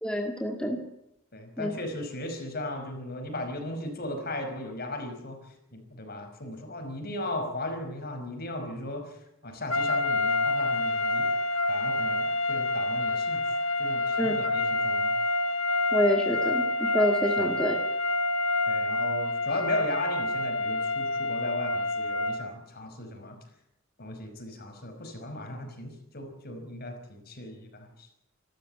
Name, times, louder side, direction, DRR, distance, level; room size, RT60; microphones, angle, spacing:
voice 1, 0.0-0.8 1.6-1.7 14.2-14.3 15.9-17.8, equal, 5° left, 2 dB, 2.0 m, -27 dB
voice 2, 1.3-11.3 11.7-15.2 17.4-17.6 18.7-23.4 24.0-28.1, left 1 dB, 50° left, 6 dB, 5.3 m, -37 dB
sound 1, 9.7-22.5, left 2 dB, 80° left, 1.6 m, -27 dB
27.5 x 13.5 x 7.9 m, 0.84 s
head